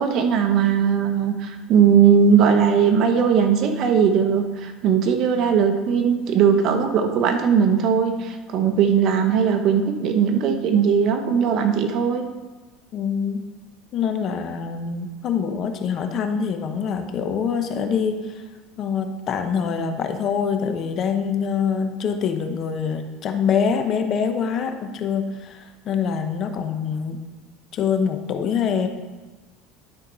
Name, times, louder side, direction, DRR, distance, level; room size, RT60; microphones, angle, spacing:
voice 1, 0.0-12.2, right 7 dB, 50° right, 6 dB, 1.1 m, -19 dB
voice 2, 12.9-13.4 13.9-18.4 18.8-27.2 27.7-28.9, left 6 dB, 40° left, 7 dB, 0.8 m, -25 dB
11.5 x 4.4 x 5.4 m, 1.2 s
supercardioid pair, 135°, 0 cm